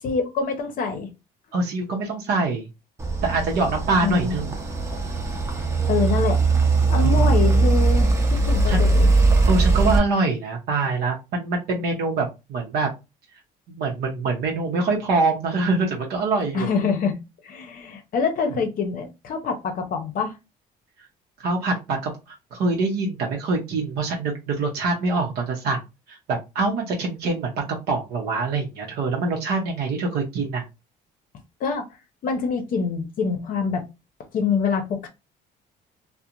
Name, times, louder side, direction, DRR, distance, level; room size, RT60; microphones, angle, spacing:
voice 1, 0.0-1.1 4.0-4.4 5.9-6.4 6.9-9.1 16.5-17.1 17.4-20.3 31.6-32.0 32.2-33.8 34.3-35.1, left 5 dB, 55° left, 4 dB, 0.6 m, -25 dB
voice 2, 1.5-2.7 3.2-4.6 7.0-7.5 8.7-8.9 9.5-12.9 13.7-16.7 21.4-25.8 26.1-30.6, right 3 dB, 70° right, 0 dB, 0.7 m, -24 dB
sound 1, 3.0-10.0, right 3 dB, 15° right, 0.6 m, -20 dB
2.4 x 2.1 x 2.8 m, 0.25 s
cardioid pair, 110°, 17 cm